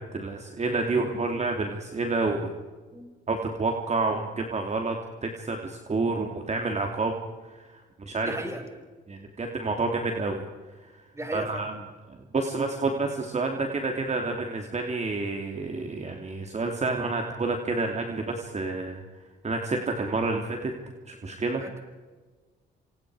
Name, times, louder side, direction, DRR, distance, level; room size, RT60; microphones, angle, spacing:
voice 1, 0.1-2.5 3.3-5.0 5.2-7.2 7.5-8.3 9.1-10.4 10.8-10.9 11.3-11.7 12.1-19.0 19.4-20.7 21.1-21.6, right 3 dB, 35° right, 3 dB, 3.0 m, -29 dB
voice 2, 8.2-8.6 11.1-11.7 21.6-21.8, right 1 dB, 15° right, 5 dB, 6.1 m, -35 dB
28.5 x 27.0 x 5.0 m, 1.4 s
cardioid pair, 90°, 20 cm